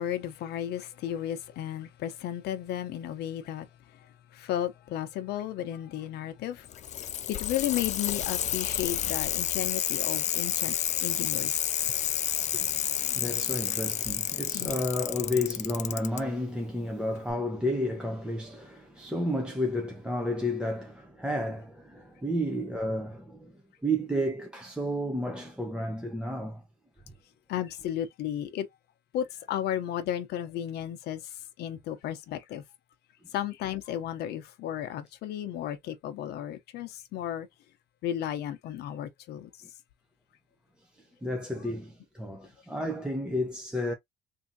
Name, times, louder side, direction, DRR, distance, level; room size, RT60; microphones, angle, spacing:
voice 1, 0.0-11.8 14.5-14.8 27.5-28.7 29.1-32.6 33.3-37.5 38.0-39.5, left 11 dB, 75° left, 0.8 m, -34 dB
Bicycle, 6.6-16.2 17.3-17.4, left 10 dB, 45° left, 0.4 m, -30 dB
voice 2, 12.4-23.5 23.8-26.6 41.2-43.9, equal, 5° right, 0.8 m, -32 dB
3.6 x 2.8 x 2.7 m
cardioid pair, 110°, 17 cm